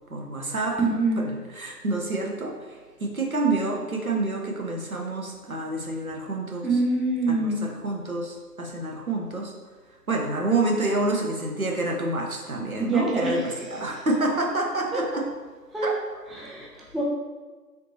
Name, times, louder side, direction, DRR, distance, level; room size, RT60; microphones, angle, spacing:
voice 1, 0.1-0.8 1.2-1.3 1.5-6.7 7.3-9.5 10.1-15.3 15.8-15.9, right 2 dB, 60° right, 0 dB, 0.6 m, -28 dB
voice 2, 0.8-1.3 6.6-7.7 12.6-14.1 14.9-15.0 15.7-16.0 16.3-17.0, right 2 dB, ahead, -3 dB, 0.4 m, -26 dB
3.3 x 2.7 x 2.8 m, 1.3 s
figure-of-eight pair, 175°, 48 cm